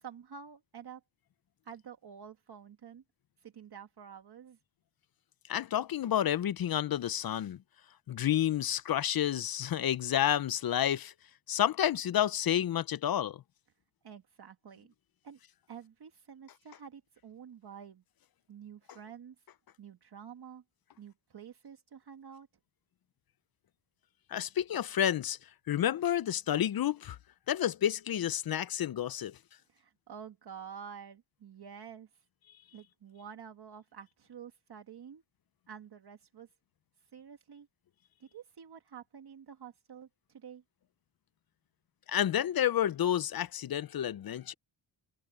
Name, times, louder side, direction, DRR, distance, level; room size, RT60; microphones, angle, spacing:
voice 1, 0.0-1.0 1.6-3.0 3.4-4.6 14.0-14.9 15.2-15.4 15.7-18.0 18.5-19.3 19.8-20.6 21.0-22.5 29.7-32.1 32.7-35.2 35.7-36.5 37.1-37.7 38.2-40.6, right 7 dB, 55° right, 1.7 m, -49 dB
voice 2, 5.5-7.6 8.1-11.1 11.5-13.4 24.3-25.4 25.7-27.2 27.5-29.4 42.1-44.5, left 10 dB, 50° left, 0.5 m, -30 dB
wide cardioid pair, 165°, 46 cm